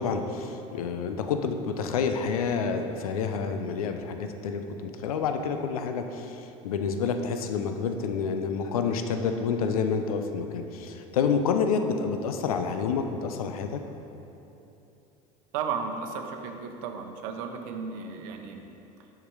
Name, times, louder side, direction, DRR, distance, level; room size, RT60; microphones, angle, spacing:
voice 1, 0.0-13.8, left 5 dB, 85° left, 7 dB, 0.5 m, -28 dB
voice 2, 15.5-18.7, right 6 dB, 70° right, 5 dB, 0.8 m, -34 dB
7.2 x 5.9 x 4.7 m, 2.9 s
hypercardioid pair, 80°, 18 cm